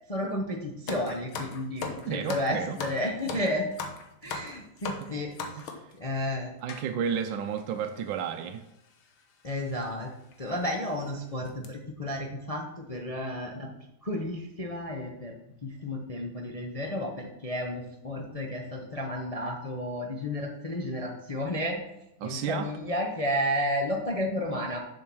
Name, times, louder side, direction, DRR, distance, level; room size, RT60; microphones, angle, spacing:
voice 1, 0.1-3.7 4.2-5.3 6.0-6.5 9.4-10.1 10.4-13.7 14.0-15.3 15.6-21.8 22.2-24.8, left 1 dB, 40° left, 0 dB, 0.5 m, -32 dB
sound 1, 0.9-5.9 6.7-6.9 7.6-7.7 7.8-8.0 9.0-9.2 9.7-9.8 10.3-10.4 10.8-11.1 11.4-11.7, left 4 dB, 90° left, 1.9 m, -38 dB
voice 2, 2.1-2.8 4.9-5.1 5.6-5.9 6.6-8.6 22.2-22.8, right 7 dB, 75° right, 5 dB, 1.2 m, -32 dB
7.1 x 6.6 x 6.2 m, 0.87 s
omnidirectional pair, 2.2 m